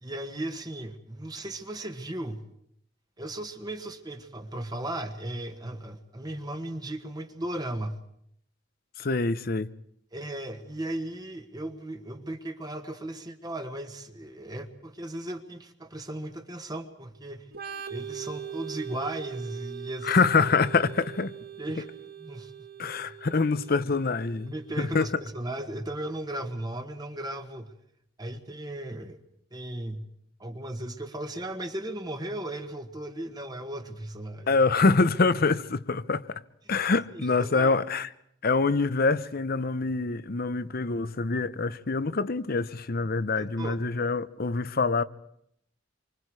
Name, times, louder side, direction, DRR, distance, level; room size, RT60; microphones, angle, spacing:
voice 1, 0.0-2.4 3.2-8.0 10.1-17.5 17.9-20.2 21.6-21.9 22.2-22.5 22.8-22.9 24.5-27.7 28.2-29.2 29.5-30.0 30.4-34.5 37.1-37.7 43.4-43.8, right 1 dB, 20° right, 1.5 m, -36 dB
voice 2, 9.0-9.7 20.0-21.3 22.8-25.1 34.5-36.4 36.7-38.1 38.4-45.0, left 4 dB, 55° left, 0.8 m, -25 dB
Organ, 17.5-25.0, right 9 dB, 55° right, 1.5 m, -41 dB
27.5 x 24.5 x 4.8 m
head